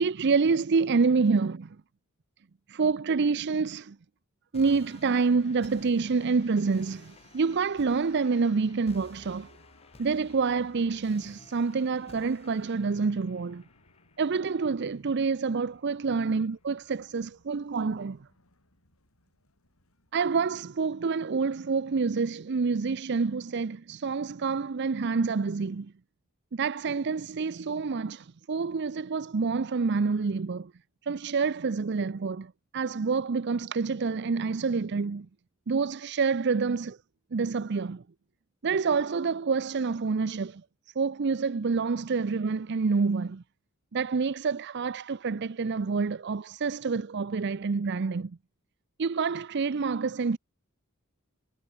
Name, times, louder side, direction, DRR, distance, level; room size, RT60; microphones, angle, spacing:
voice 1, 0.0-1.5 2.7-4.0 4.5-9.5 10.0-13.6 14.2-18.2 20.1-25.9 26.5-30.7 31.1-35.3 35.7-37.0 37.3-38.0 38.6-40.6 41.0-43.4 43.9-48.4 49.0-50.4, right 4 dB, 55° right, 0.5 m, -27 dB
sound 1, 4.5-15.5, left 2 dB, 30° left, 1.6 m, -55 dB
sound 2, 5.0-20.3, left 3 dB, 80° left, 6.4 m, -64 dB
head